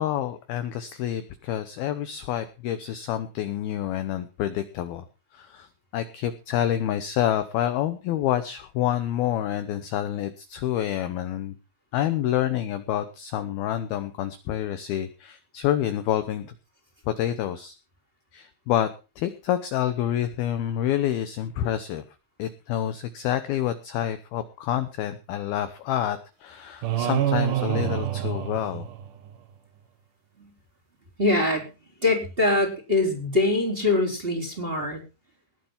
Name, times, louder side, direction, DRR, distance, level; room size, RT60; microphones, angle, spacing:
voice 1, 0.0-5.1 5.3-5.7 5.9-11.6 11.9-16.5 17.1-17.7 18.3-18.9 19.2-22.0 22.4-28.9, left 11 dB, 75° left, 10 dB, 2.4 m, -28 dB
sound 1, 26.8-29.3, right 11 dB, 60° right, 2.3 m, -26 dB
voice 2, 31.2-31.7 32.0-35.0, left 2 dB, 15° right, 2 dB, 3.7 m, -23 dB
20.0 x 7.6 x 5.6 m, 0.33 s
omnidirectional pair, 5.4 m